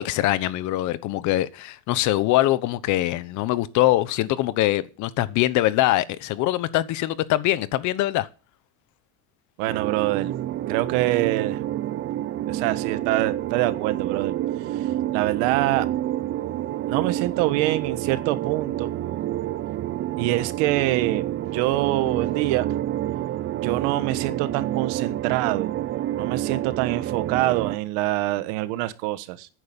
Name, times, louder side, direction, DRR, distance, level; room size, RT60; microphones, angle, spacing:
voice 1, 0.0-8.3, left 15 dB, 60° left, 1.1 m, -23 dB
voice 2, 9.6-10.3 10.7-11.6 12.5-14.3 14.7-15.9 16.9-18.9 20.2-22.7 23.5-25.7 26.2-29.5, right 16 dB, 90° right, 1.4 m, -25 dB
sound 1, 9.7-27.8, right 13 dB, 40° right, 0.6 m, -28 dB
10.5 x 9.7 x 7.2 m
cardioid pair, 150°, 34 cm